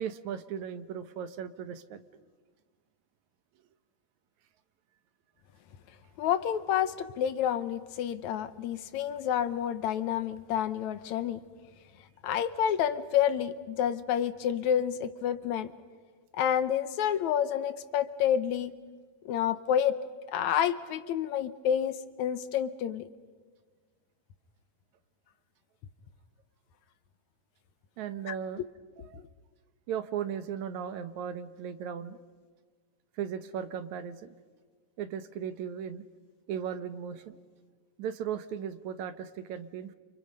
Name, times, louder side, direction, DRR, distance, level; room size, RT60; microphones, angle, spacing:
voice 1, 0.0-2.0 28.0-28.6 29.1-29.2 29.9-32.2 33.2-34.3 35.0-36.1 36.5-37.4 38.0-40.0, right 8 dB, 75° right, 11 dB, 2.4 m, -37 dB
voice 2, 6.2-11.4 12.2-15.7 16.3-18.7 19.3-20.0 20.3-23.1 28.3-28.4 29.1-29.2, left 9 dB, 75° left, 13 dB, 2.2 m, -29 dB
30.0 x 29.5 x 5.4 m, 1.5 s
omnidirectional pair, 3.5 m